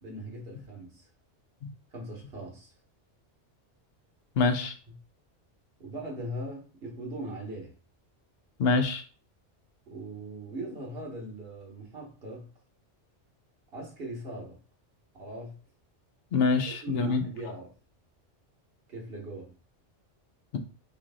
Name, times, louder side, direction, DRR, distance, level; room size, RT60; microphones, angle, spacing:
voice 1, 0.0-1.1 1.9-2.7 5.8-7.7 9.9-12.5 13.7-14.6 15.1-15.6 16.7-17.7 18.9-19.5, right 1 dB, 55° right, -1 dB, 1.7 m, -40 dB
voice 2, 4.4-4.7 8.6-9.0 16.3-17.2, left 4 dB, 60° left, 7 dB, 0.9 m, -25 dB
4.6 x 3.0 x 3.7 m, 0.38 s
omnidirectional pair, 1.2 m